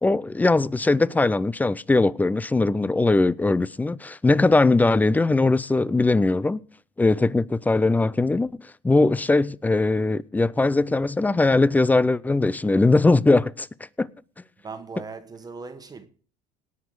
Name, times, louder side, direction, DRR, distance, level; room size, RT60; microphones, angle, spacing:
voice 1, 0.0-6.6 7.0-13.7 14.0-14.1, left 3 dB, 10° left, 0.4 m, -20 dB
voice 2, 14.6-16.1, right 4 dB, 20° right, 1.4 m, -38 dB
18.0 x 6.1 x 4.8 m
cardioid pair, 115°, 18 cm